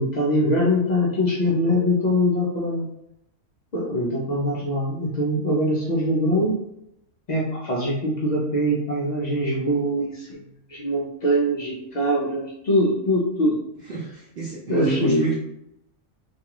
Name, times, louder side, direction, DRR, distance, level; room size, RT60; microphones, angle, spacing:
voice 1, 0.0-2.9 3.7-6.5 7.3-10.4 10.7-13.6 14.7-15.3, equal, 75° left, -5 dB, 0.4 m, -23 dB
voice 2, 13.9-15.3, right 2 dB, 65° right, -4 dB, 0.5 m, -28 dB
2.5 x 2.3 x 2.8 m, 0.81 s
omnidirectional pair, 1.4 m